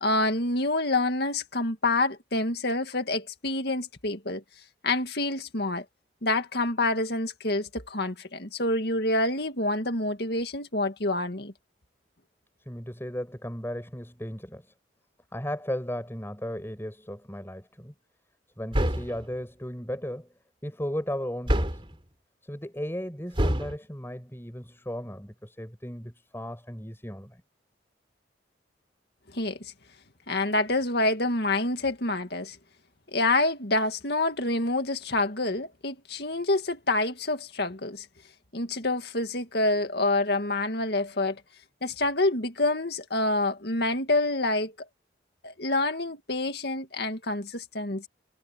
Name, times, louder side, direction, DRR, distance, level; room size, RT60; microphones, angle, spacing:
voice 1, 0.0-4.4 4.8-5.8 6.2-11.5 29.3-29.6 30.3-32.6 33.1-38.1 38.5-41.4 41.8-44.7 45.4-48.1, left 2 dB, 60° left, 2.2 m, -27 dB
voice 2, 12.6-14.7 15.3-17.9 18.6-20.3 20.6-21.8 22.4-27.4, equal, 15° left, 6.6 m, -35 dB
sound 1, 18.7-19.3 21.5-22.0 23.4-23.8, equal, 30° right, 3.4 m, -26 dB
head